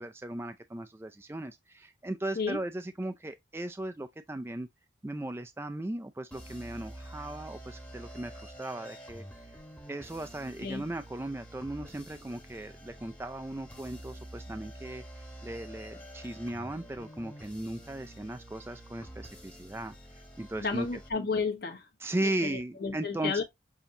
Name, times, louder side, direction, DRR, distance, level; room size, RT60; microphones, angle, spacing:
voice 1, 0.0-4.7 5.0-9.2 9.9-20.0 20.4-20.9 22.0-23.4, right 1 dB, 15° right, 0.3 m, -37 dB
sound 1, 6.3-21.1, right 1 dB, 10° left, 1.0 m, -48 dB
voice 2, 20.6-21.9 22.2-23.4, left 4 dB, 55° left, 1.2 m, -32 dB
7.0 x 2.8 x 2.7 m
head